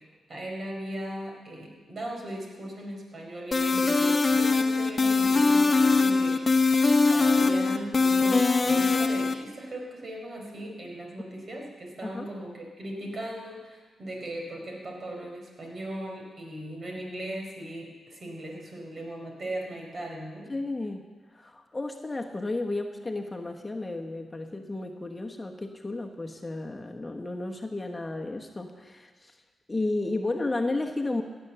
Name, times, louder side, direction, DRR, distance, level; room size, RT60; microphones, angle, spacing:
voice 1, 0.0-20.5, right 1 dB, 50° right, 0 dB, 4.5 m, -38 dB
sound 1, 3.5-9.3, left 3 dB, 40° left, 0.9 m, -22 dB
voice 2, 20.5-21.0 21.3-29.3 29.7-31.2, left 2 dB, 25° left, 3 dB, 1.2 m, -33 dB
16.5 x 8.1 x 7.0 m, 1.4 s
cardioid pair, 55°, 0 cm